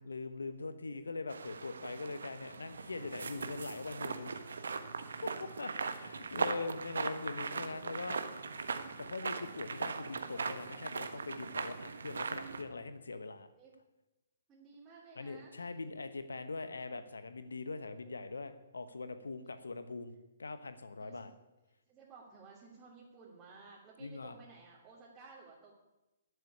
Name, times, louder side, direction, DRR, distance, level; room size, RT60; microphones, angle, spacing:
voice 1, 0.0-4.4 5.2-5.3 5.6-8.2 9.0-13.5 15.2-20.1 20.4-21.3 24.0-24.3, left 3 dB, 80° left, 11 dB, 1.0 m, -42 dB
sound 1, 1.3-12.6, right 5 dB, 70° right, 1.3 m, -40 dB
voice 2, 14.5-15.7 21.0-21.3 21.9-25.7, right 4 dB, 20° right, -6 dB, 3.1 m, -55 dB
11.5 x 8.2 x 9.9 m, 1.0 s
figure-of-eight pair, 130°, 0 cm